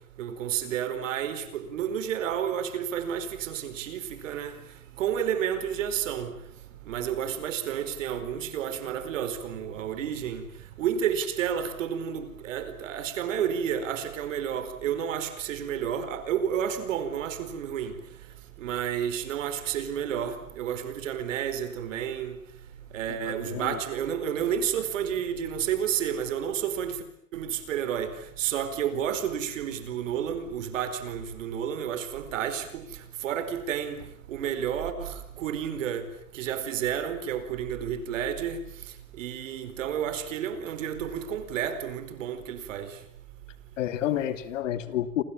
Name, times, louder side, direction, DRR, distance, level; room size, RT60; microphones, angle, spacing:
voice 1, 0.2-4.5 5.0-6.3 6.9-10.5 10.8-18.0 18.6-22.4 22.9-27.0 27.3-32.8 33.2-34.0 34.3-36.1 36.3-38.6 39.2-43.0, right 9 dB, 60° right, 4.6 m, -31 dB
voice 2, 23.2-23.8 43.8-45.2, left 11 dB, 60° left, 2.8 m, -30 dB
28.5 x 27.5 x 7.3 m
hypercardioid pair, 160°, 43 cm